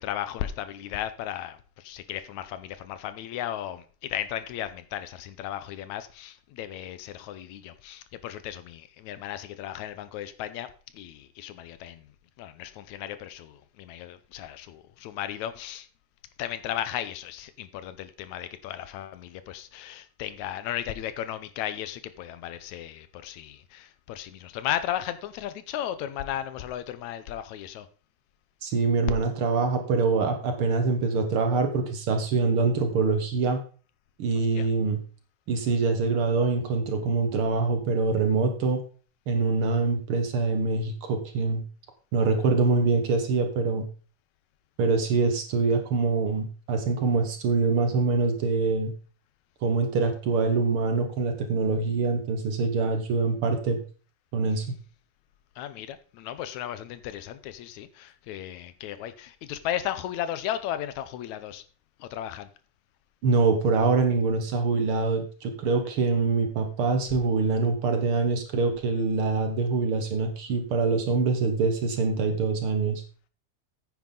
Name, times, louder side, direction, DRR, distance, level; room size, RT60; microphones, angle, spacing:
voice 1, 0.0-12.1 12.4-15.9 16.4-27.9 34.3-34.7 55.6-61.6 62.0-62.5, left 11 dB, 75° left, 2.0 m, -35 dB
voice 2, 28.6-33.6 34.2-35.0 35.5-38.8 39.3-41.6 42.1-43.8 44.8-48.9 49.6-53.8 54.3-54.7 63.2-73.0, right 4 dB, 55° right, 1.7 m, -24 dB
9.5 x 9.4 x 3.8 m
omnidirectional pair, 3.5 m